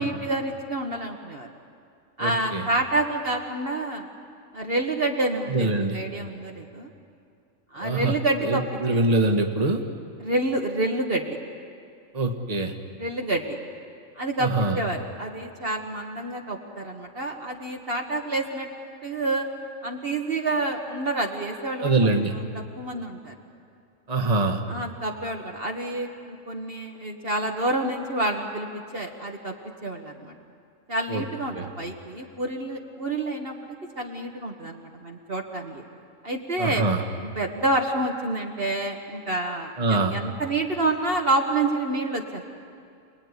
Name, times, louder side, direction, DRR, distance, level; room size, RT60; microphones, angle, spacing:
voice 1, 0.0-1.5 2.2-4.1 4.5-6.9 7.7-8.6 8.9-9.0 10.2-11.4 13.0-13.6 14.2-18.7 19.0-19.5 19.8-23.3 24.7-29.5 29.8-30.3 30.9-33.6 34.0-35.8 36.2-36.8 37.2-42.4, right 2 dB, 45° right, 1 dB, 1.7 m, -28 dB
voice 2, 2.2-2.6 5.5-6.0 7.8-8.2 8.4-9.8 12.1-12.7 14.4-14.8 21.8-22.3 24.1-24.6 31.1-31.2 31.5-31.7 36.6-37.0 39.8-40.2, right 2 dB, 30° right, 3 dB, 1.7 m, -24 dB
29.0 x 20.0 x 9.8 m, 2.4 s
omnidirectional pair, 1.5 m